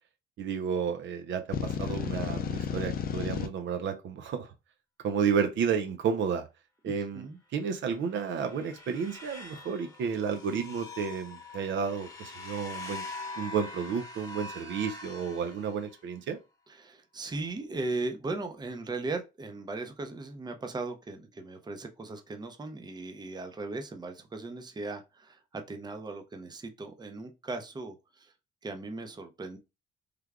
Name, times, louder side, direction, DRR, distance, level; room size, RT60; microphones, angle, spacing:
voice 1, 0.4-4.5 5.0-6.5 6.8-13.0 13.4-16.4, right 6 dB, 70° right, 0.6 m, -31 dB
sound 1, 1.5-3.5, left 7 dB, 50° left, 0.5 m, -32 dB
voice 2, 6.9-7.4 16.7-28.3 28.6-29.6, right 3 dB, 20° right, 0.6 m, -38 dB
sound 2, 7.9-16.2, left 3 dB, 20° left, 1.1 m, -44 dB
3.3 x 2.2 x 3.5 m
cardioid pair, 90°, 20 cm